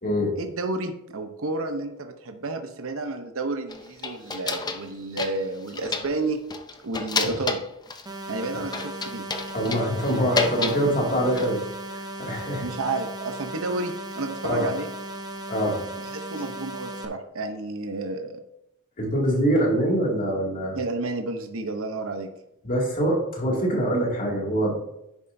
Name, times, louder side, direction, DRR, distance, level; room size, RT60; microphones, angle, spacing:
voice 1, 0.4-6.4 6.8-7.6 8.3-9.2 12.6-14.9 16.0-18.4 20.8-22.3, right 2 dB, 65° right, 6 dB, 0.8 m, -31 dB
sound 1, 3.7-4.9 5.2-6.2 6.5-8.1 8.7-10.8 11.1-11.6, left 4 dB, 20° left, 0.5 m, -30 dB
sound 2, 8.1-17.1, right 1 dB, 20° right, 0.8 m, -37 dB
voice 2, 9.5-11.6 11.9-12.6 14.4-14.7 15.5-15.8 19.0-20.8 22.6-24.8, right 1 dB, 40° left, -2 dB, 2.4 m, -24 dB
9.8 x 7.3 x 2.7 m, 0.83 s
head